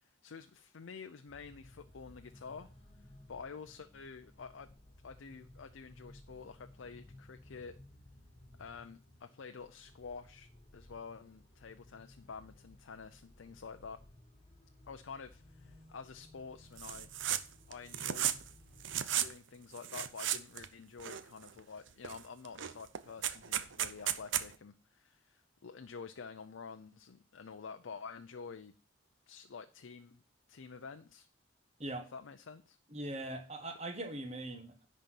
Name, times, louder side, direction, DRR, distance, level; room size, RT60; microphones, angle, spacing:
voice 1, 0.0-2.7 3.3-4.8 5.0-7.8 8.6-14.0 14.9-17.1 17.7-18.3 19.2-28.7 29.3-30.2 30.5-31.3 32.1-32.8, left 5 dB, 80° left, 0.5 m, -49 dB
sound 1, 1.3-19.3, left 1 dB, 30° left, 1.6 m, -59 dB
sound 2, 16.8-17.4 17.7-18.5 18.8-19.3 19.8-20.7 21.0-21.6 22.0-22.2 22.4-24.5, right 11 dB, 70° right, 0.6 m, -34 dB
voice 2, 32.9-34.8, right 1 dB, 30° right, 1.2 m, -41 dB
10.5 x 4.2 x 7.5 m
head